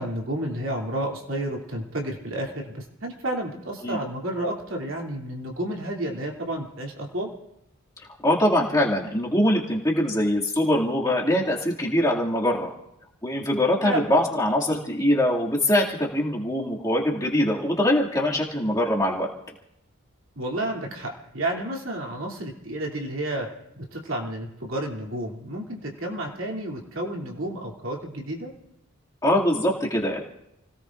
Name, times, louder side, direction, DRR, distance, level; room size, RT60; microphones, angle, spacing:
voice 1, 0.0-7.3 13.8-14.1 20.3-23.5 23.7-28.5, right 1 dB, 65° right, 0 dB, 2.8 m, -31 dB
voice 2, 8.2-12.7 13.2-19.3 29.2-30.2, left 1 dB, 15° left, -4 dB, 2.3 m, -23 dB
29.5 x 18.0 x 2.5 m, 0.84 s
head